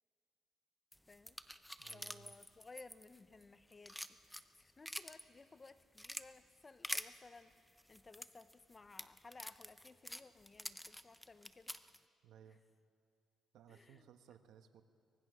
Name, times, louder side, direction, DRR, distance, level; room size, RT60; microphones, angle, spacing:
sound 1, 0.9-3.4 3.7-5.2 5.7-6.2 6.8-7.1 7.8-12.0, equal, 5° left, 0.7 m, -46 dB
voice 1, 1.1-1.4 1.9-11.7 12.5-12.6 13.7-14.1, left 3 dB, 30° left, 12 dB, 0.9 m, -59 dB
voice 2, 1.8-2.3 12.2-12.6 13.5-14.8, right 9 dB, 80° right, 8 dB, 1.2 m, -61 dB
24.0 x 19.5 x 6.3 m, 2.4 s
cardioid pair, 90°, 0 cm